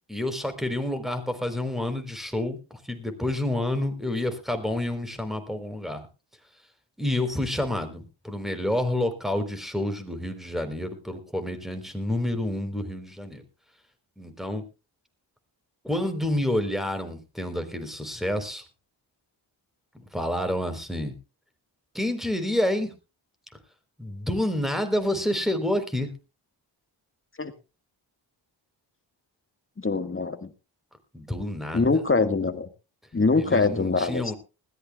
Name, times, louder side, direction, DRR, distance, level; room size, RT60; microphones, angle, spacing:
voice 1, 0.1-6.1 7.0-13.4 14.2-14.6 15.8-18.6 19.9-21.1 21.9-22.9 24.0-26.1 31.1-31.9 33.4-34.3, left 1 dB, ahead, 8 dB, 4.1 m, -29 dB
voice 2, 29.8-30.5 31.7-32.7 33.1-34.3, left 3 dB, 25° left, 9 dB, 1.9 m, -23 dB
20.0 x 15.0 x 2.4 m, 0.30 s
cardioid pair, 75°, 46 cm